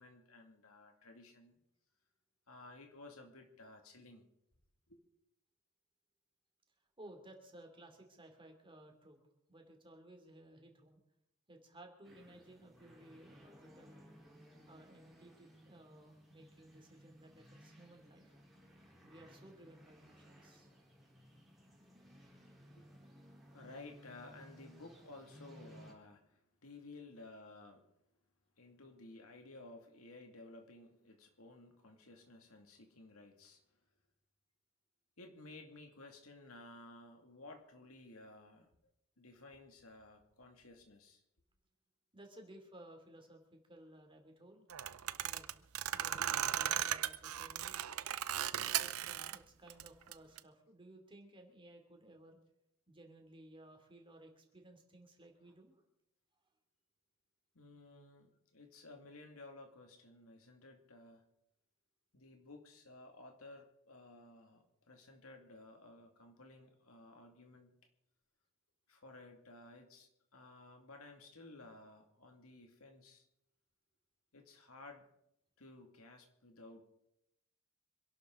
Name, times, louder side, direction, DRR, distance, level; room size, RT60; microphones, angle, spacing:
voice 1, 0.0-1.6 2.5-4.3 4.9-5.0 22.8-22.9 23.5-27.9 28.6-33.6 35.2-38.7 39.2-41.2 46.2-46.3 55.4-55.5 57.5-61.2 62.1-67.7 68.9-73.3 74.3-75.1 75.6-76.8, left 2 dB, 75° left, 2.4 m, -55 dB
voice 2, 7.0-9.2 9.5-11.0 11.5-14.0 14.7-18.3 19.0-20.7 42.1-44.6 45.2-45.7 45.9-47.8 48.6-52.4 52.9-55.8, right 1 dB, 25° right, 2.9 m, -58 dB
sound 1, 12.0-25.9, equal, ahead, 4.0 m, -60 dB
sound 2, 44.7-49.4 49.7-50.4, right 11 dB, 80° right, 0.6 m, -37 dB
26.0 x 11.5 x 3.9 m
head